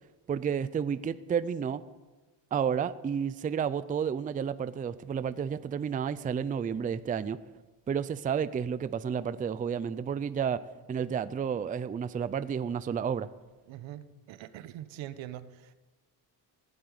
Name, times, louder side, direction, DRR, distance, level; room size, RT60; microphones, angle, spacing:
voice 1, 0.3-1.8 2.5-7.4 7.9-10.6 10.9-13.3, right 7 dB, 20° right, 14 dB, 0.4 m, -31 dB
voice 2, 13.7-15.7, right 12 dB, 85° right, 12 dB, 1.1 m, -43 dB
16.0 x 8.7 x 9.5 m, 1.2 s
cardioid pair, 150°, 44 cm